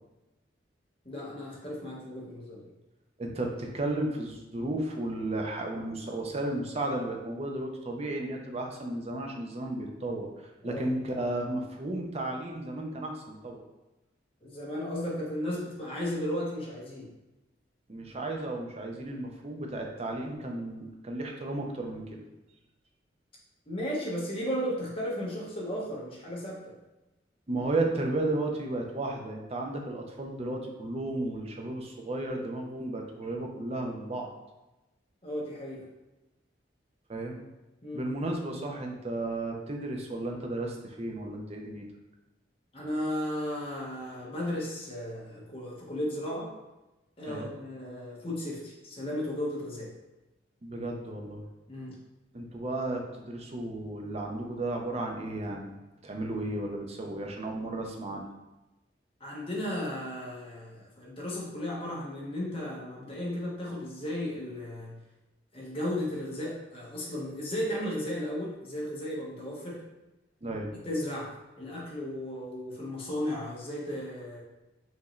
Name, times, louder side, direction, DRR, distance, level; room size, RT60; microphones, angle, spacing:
voice 1, 1.0-2.6 10.6-10.8 14.4-17.1 23.7-26.7 35.2-35.8 37.8-38.0 42.7-46.5 47.2-49.9 51.7-52.0 59.2-64.9 65.5-69.8 70.5-74.4, left 1 dB, 30° left, -4 dB, 1.1 m, -35 dB
voice 2, 3.2-13.6 17.9-22.3 27.5-34.3 37.1-37.4 37.9-41.9 47.3-47.5 50.6-51.4 52.3-55.7 56.0-58.3 70.4-70.7, right 2 dB, 35° right, 1 dB, 0.6 m, -34 dB
5.8 x 2.7 x 3.1 m, 1.0 s
head